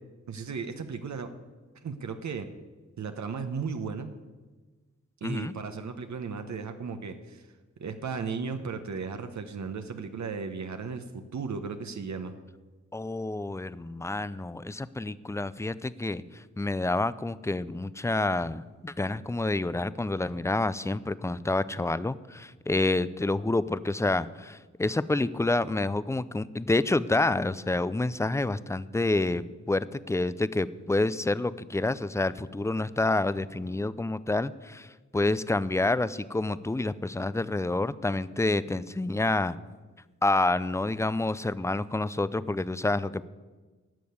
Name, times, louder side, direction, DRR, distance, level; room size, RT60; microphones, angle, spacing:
voice 1, 0.3-1.3 1.8-2.5 3.0-4.1 5.2-7.5 7.8-12.4, right 5 dB, 65° right, 7 dB, 1.0 m, -35 dB
voice 2, 5.2-5.5 12.9-34.9 35.1-39.6 40.2-43.3, left 2 dB, 10° left, 16 dB, 0.4 m, -28 dB
12.5 x 6.7 x 9.4 m, 1.3 s
wide cardioid pair, 95°, 30 cm